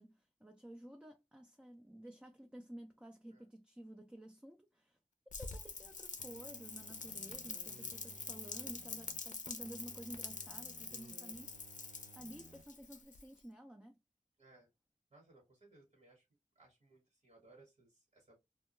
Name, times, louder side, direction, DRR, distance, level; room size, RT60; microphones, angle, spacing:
voice 1, 0.0-5.0 5.4-11.8 12.1-14.0, right 1 dB, 10° right, 0.4 m, -53 dB
Rain, 5.3-13.4, left 4 dB, 70° left, 0.5 m, -46 dB
sound 1, 6.2-9.2 9.6-12.6 13.0-13.1, right 5 dB, 90° right, 0.4 m, -60 dB
voice 2, 14.4-14.7 15.1-16.3 16.5-18.4, right 2 dB, 55° right, 1.2 m, -64 dB
2.2 x 2.2 x 2.9 m
wide cardioid pair, 55°, 13 cm